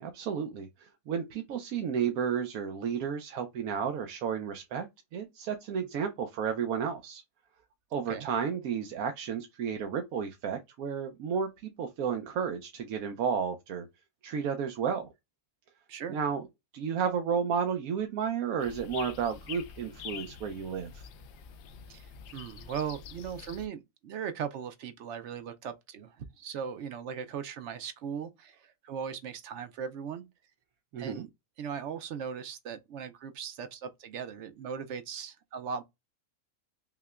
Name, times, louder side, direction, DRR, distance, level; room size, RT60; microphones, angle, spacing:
voice 1, 0.0-7.2 7.9-13.9 14.2-15.1 16.1-16.4 16.7-21.1 30.9-31.3, right 7 dB, 85° right, 1.1 m, -32 dB
sound 1, 18.6-23.7, left 7 dB, 65° left, 0.7 m, -46 dB
voice 2, 21.9-30.2 31.0-31.3 31.6-35.8, right 7 dB, 65° right, 0.8 m, -38 dB
5.7 x 2.1 x 2.3 m
omnidirectional pair, 1.5 m